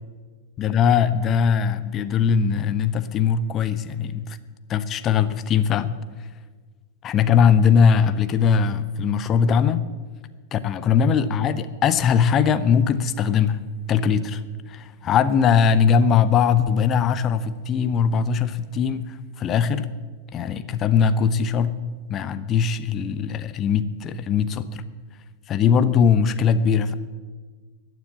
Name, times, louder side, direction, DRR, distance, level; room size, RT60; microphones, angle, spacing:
voice 1, 0.6-4.4 4.7-6.0 7.0-9.9 10.5-13.6 13.9-14.4 14.7-19.9 20.3-21.8 22.1-24.8 25.5-26.9, left 7 dB, 30° left, 13 dB, 0.8 m, -20 dB
15.0 x 9.4 x 8.3 m, 1.5 s
figure-of-eight pair, 90°, 0 cm